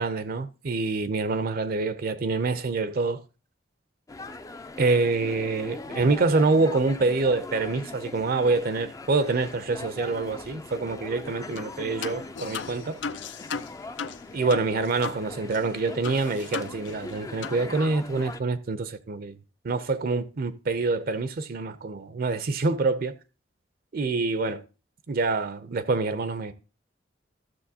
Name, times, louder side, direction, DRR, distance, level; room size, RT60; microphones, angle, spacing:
voice 1, 0.0-3.2 4.8-13.0 14.3-19.4 19.6-23.2 23.9-24.6 25.1-26.5, right 3 dB, 55° right, 0.5 m, -26 dB
sound 1, 4.1-18.4, left 2 dB, 20° left, 0.4 m, -41 dB
sound 2, 11.6-11.7 12.0-15.2 15.5-15.6 16.0-17.1 17.4-17.6, left 6 dB, 75° left, 0.5 m, -36 dB
13.5 x 6.5 x 2.7 m
head